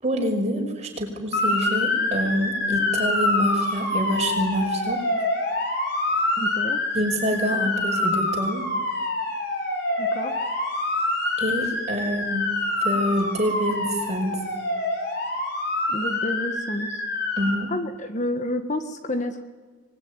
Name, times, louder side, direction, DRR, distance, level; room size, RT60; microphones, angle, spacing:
voice 1, 0.0-5.0 6.9-8.6 11.4-12.5 12.8-14.4 17.4-17.7, equal, 35° right, 1 dB, 5.9 m, -26 dB
Motor vehicle (road) / Siren, 1.3-17.5, left 2 dB, 55° left, 6.3 m, -26 dB
voice 2, 6.4-6.8 10.0-10.3 15.9-17.0 17.7-19.4, left 1 dB, 40° left, 8 dB, 1.7 m, -29 dB
25.0 x 20.5 x 9.9 m, 1.4 s
head